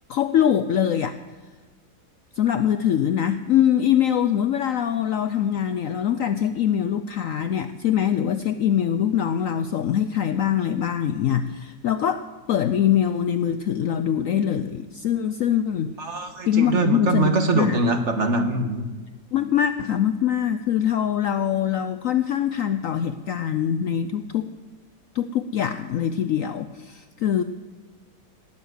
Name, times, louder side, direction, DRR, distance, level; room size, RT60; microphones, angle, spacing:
voice 1, 0.1-1.2 2.4-15.9 16.5-17.8 19.3-24.5 25.1-27.4, left 9 dB, 70° left, 10 dB, 0.8 m, -23 dB
voice 2, 16.0-18.9, right 3 dB, 45° right, 6 dB, 1.5 m, -23 dB
19.0 x 7.2 x 8.0 m, 1.3 s
omnidirectional pair, 1.8 m